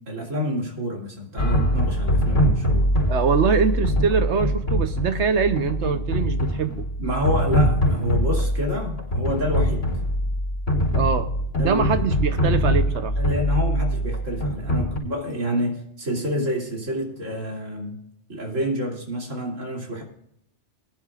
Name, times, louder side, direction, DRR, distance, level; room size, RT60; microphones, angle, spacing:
voice 1, 0.1-2.9 7.0-9.8 11.5-12.1 13.2-18.0 18.3-20.0, equal, 85° right, -1 dB, 3.2 m, -28 dB
sound 1, 1.4-15.0, equal, 75° left, 4.0 m, -23 dB
voice 2, 3.1-6.8 10.9-11.3 11.6-13.1, right 6 dB, 70° right, 10 dB, 1.1 m, -23 dB
20.5 x 11.0 x 2.4 m, 0.77 s
omnidirectional pair, 1.3 m